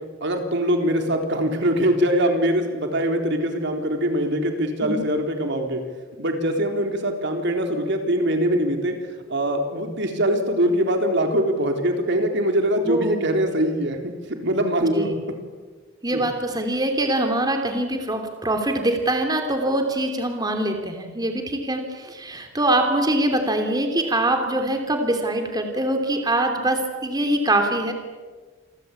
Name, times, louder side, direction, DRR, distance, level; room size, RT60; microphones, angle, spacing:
voice 1, 0.2-5.8 6.2-9.0 9.3-15.1 16.1-16.2, equal, 60° right, 4 dB, 3.9 m, -23 dB
voice 2, 12.8-13.3 14.9-15.1 16.0-27.9, right 1 dB, 20° right, 4 dB, 3.1 m, -23 dB
28.5 x 23.5 x 8.5 m, 1.4 s
head